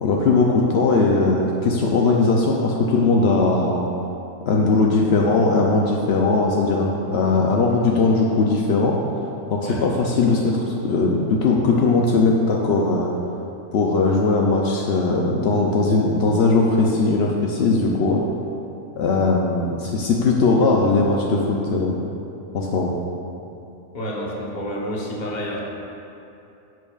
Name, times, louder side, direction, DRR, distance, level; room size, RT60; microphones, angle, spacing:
voice 1, 0.0-3.9 4.5-9.0 9.5-13.1 13.7-18.2 19.0-22.1 22.5-22.9, left 3 dB, 70° left, -1 dB, 0.6 m, -19 dB
voice 2, 23.9-25.6, equal, 35° left, -3 dB, 1.0 m, -29 dB
10.0 x 6.8 x 2.4 m, 2.7 s
omnidirectional pair, 1.7 m